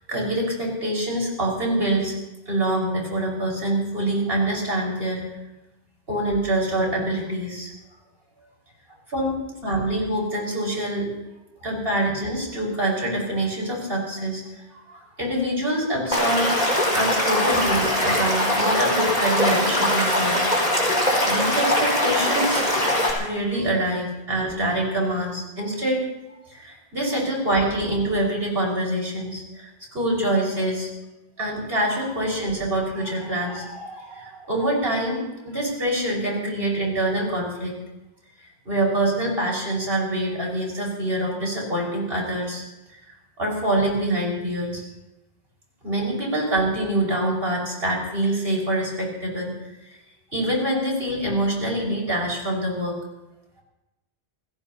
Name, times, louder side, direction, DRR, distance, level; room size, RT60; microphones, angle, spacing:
voice 1, 0.1-2.2 2.5-5.2 6.1-7.7 9.1-9.3 9.6-11.1 11.6-14.4 14.9-16.6 16.9-20.4 20.7-22.6 23.2-26.0 26.5-29.6 29.9-30.9 31.4-37.8 38.7-42.6 43.4-44.8 45.8-49.5 50.3-53.0, right 1 dB, 65° right, -2 dB, 5.8 m, -25 dB
Stream / Liquid, 16.1-23.1, left 1 dB, 45° left, 4.9 m, -21 dB
29.0 x 17.0 x 2.9 m, 0.96 s
omnidirectional pair, 1.1 m